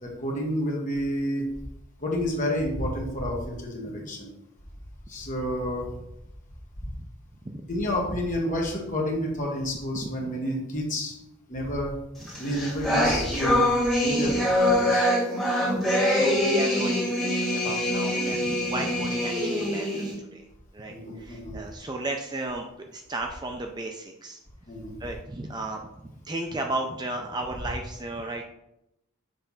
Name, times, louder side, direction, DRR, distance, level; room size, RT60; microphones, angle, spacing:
voice 1, 0.0-1.5 2.0-4.3 5.1-6.0 7.7-11.1 11.5-12.0 12.4-13.6 14.0-15.1 20.9-21.6 24.7-25.0, equal, 35° left, -1 dB, 1.4 m, -30 dB
voice 2, 9.9-10.3 15.6-20.5 20.7-22.6 22.9-24.4 25.0-28.4, right 2 dB, 20° right, 3 dB, 0.4 m, -35 dB
sound 1, 12.3-20.1, left 1 dB, ahead, 2.2 m, -24 dB
6.6 x 3.4 x 5.6 m, 0.84 s
head